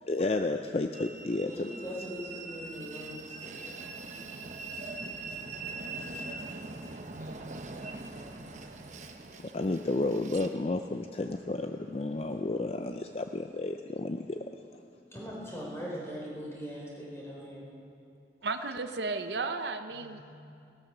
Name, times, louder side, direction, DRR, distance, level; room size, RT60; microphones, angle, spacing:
voice 1, 0.0-1.7 9.5-14.4, left 2 dB, 35° left, 6 dB, 0.4 m, -31 dB
Train, 0.9-13.4, right 3 dB, 40° right, 1.0 m, -43 dB
voice 2, 1.4-3.9 7.2-7.3 15.1-17.7 19.9-20.2, equal, 15° left, -4 dB, 3.8 m, -41 dB
voice 3, 18.4-20.2, right 3 dB, 75° right, 9 dB, 0.7 m, -34 dB
17.5 x 13.5 x 6.1 m, 2.5 s
head